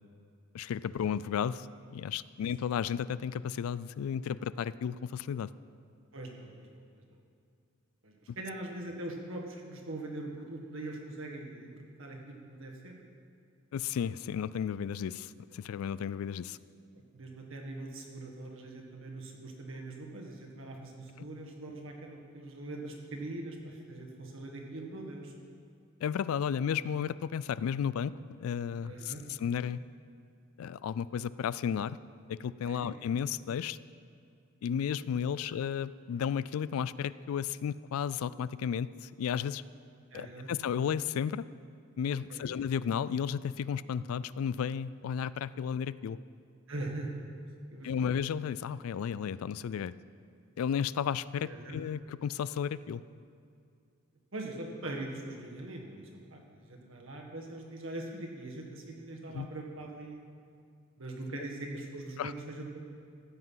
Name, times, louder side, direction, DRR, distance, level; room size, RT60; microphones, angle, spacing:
voice 1, 0.5-5.5 8.3-8.4 13.7-16.6 26.0-28.1 28.4-29.1 29.4-29.8 30.6-32.0 32.3-33.8 34.6-39.6 40.1-41.5 42.0-46.2 47.8-49.9 50.6-53.0 59.3-59.5 62.2-62.3, left 7 dB, 80° left, 18 dB, 0.3 m, -33 dB
voice 2, 6.1-6.7 7.1-7.2 8.0-13.0 17.1-25.3 28.8-29.2 32.7-32.9 35.4-35.5 40.1-40.5 42.3-42.5 46.7-47.2 47.7-48.1 51.4-51.8 54.3-60.2 61.0-62.8, right 2 dB, 65° right, 0 dB, 1.7 m, -42 dB
14.0 x 8.0 x 5.6 m, 2.3 s
head